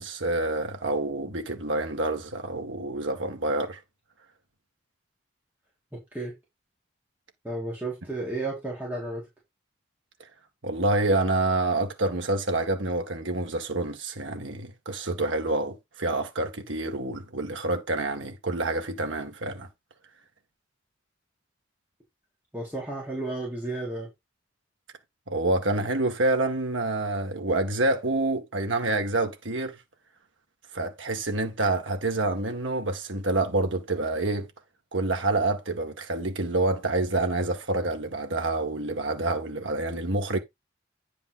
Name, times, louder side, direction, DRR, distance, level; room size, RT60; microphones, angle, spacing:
voice 1, 0.0-3.8 10.6-19.7 25.3-29.7 30.7-34.5 34.9-40.4, right 2 dB, 75° right, 2.0 m, -27 dB
voice 2, 5.9-6.3 7.4-9.3 22.5-24.1, right 2 dB, 10° right, 3.6 m, -33 dB
10.0 x 5.2 x 4.1 m
head